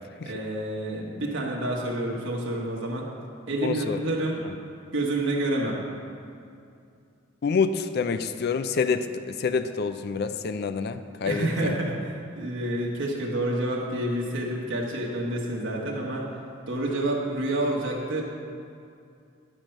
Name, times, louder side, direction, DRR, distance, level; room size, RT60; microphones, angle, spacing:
voice 1, 0.2-3.1 3.5-4.4 4.9-5.8 11.2-16.3 16.7-18.2, right 1 dB, 65° right, -3 dB, 1.2 m, -28 dB
voice 2, 3.6-4.0 4.4-4.5 7.4-11.8, left 5 dB, 50° left, 10 dB, 0.4 m, -27 dB
9.9 x 4.5 x 6.5 m, 2.4 s
head